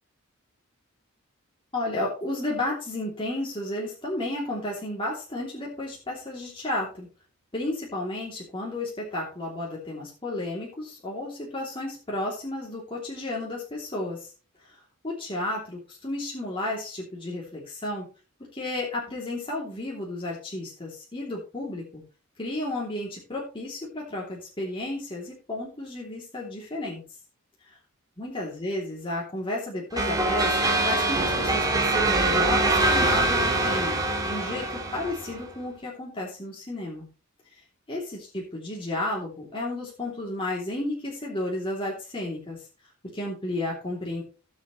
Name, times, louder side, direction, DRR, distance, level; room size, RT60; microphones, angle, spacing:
voice 1, 1.7-7.1 7.5-14.3 14.7-18.1 18.5-22.0 22.4-27.0 27.7-27.8 28.2-37.1 37.9-42.6 43.1-44.2, left 1 dB, 25° left, -4 dB, 3.1 m, -32 dB
sound 1, 30.0-35.4, right 2 dB, 15° right, 1.6 m, -24 dB
18.0 x 6.6 x 3.2 m, 0.34 s
head